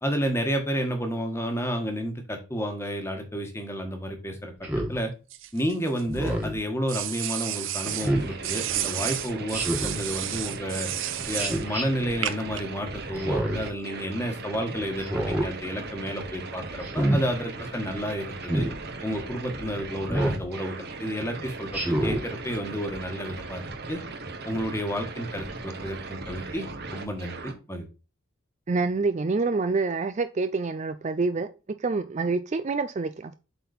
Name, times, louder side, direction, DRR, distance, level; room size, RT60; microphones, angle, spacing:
voice 1, 0.0-4.5 4.9-5.1 5.5-10.9 11.3-18.7 19.0-23.6 23.9-24.0 24.4-26.6 26.9-27.9, equal, 10° left, 1.4 m, -31 dB
Speech synthesizer, 4.6-5.0 6.1-6.6 8.0-8.3 9.5-10.0 11.4-11.8 13.1-13.7 15.0-15.5 16.8-17.2 18.4-18.7 20.1-20.4 21.7-22.2, right 1 dB, 5° right, 1.6 m, -26 dB
sound 1, 5.3-6.3 6.9-8.1 8.4-11.6 12.2-12.6, right 12 dB, 65° right, 0.7 m, -31 dB
sound 2, 7.8-27.5, right 3 dB, 50° right, 1.2 m, -38 dB
voice 2, 28.7-31.5 31.8-33.3, right 3 dB, 35° right, 0.4 m, -27 dB
7.9 x 4.2 x 4.1 m
head